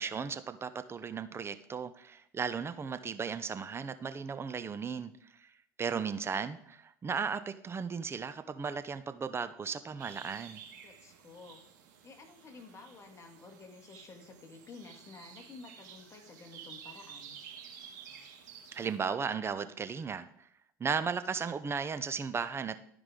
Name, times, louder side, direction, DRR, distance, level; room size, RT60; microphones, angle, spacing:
voice 1, 0.0-5.1 5.4-5.5 5.8-10.6 18.7-20.5 20.8-22.8, right 6 dB, 25° right, 12 dB, 0.6 m, -36 dB
sound 1, 10.0-19.0, right 7 dB, 75° right, 1.8 m, -52 dB
voice 2, 10.8-11.6 12.0-17.4, left 4 dB, 30° left, 3 dB, 1.8 m, -52 dB
12.5 x 4.8 x 3.8 m, 0.68 s
hypercardioid pair, 85°, 9 cm